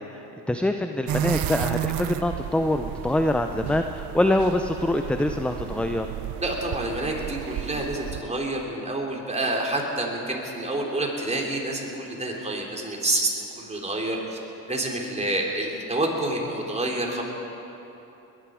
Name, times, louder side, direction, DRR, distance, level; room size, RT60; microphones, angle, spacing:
voice 1, 0.0-6.1, left 1 dB, 5° left, 6 dB, 0.5 m, -25 dB
sound 1, 1.1-8.2, right 12 dB, 65° right, 0.7 m, -32 dB
voice 2, 6.4-14.4 14.7-17.2, right 1 dB, 15° right, -1 dB, 3.2 m, -28 dB
21.0 x 11.0 x 5.0 m, 3.0 s
supercardioid pair, 80°, 39 cm